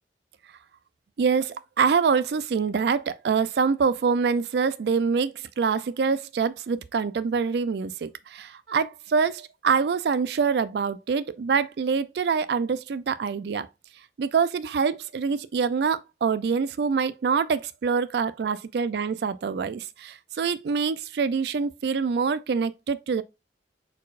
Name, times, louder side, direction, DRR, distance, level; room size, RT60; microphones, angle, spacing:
voice 1, 1.2-13.7 14.2-23.2, right 5 dB, 70° right, 0.3 m, -25 dB
4.2 x 4.1 x 2.4 m
head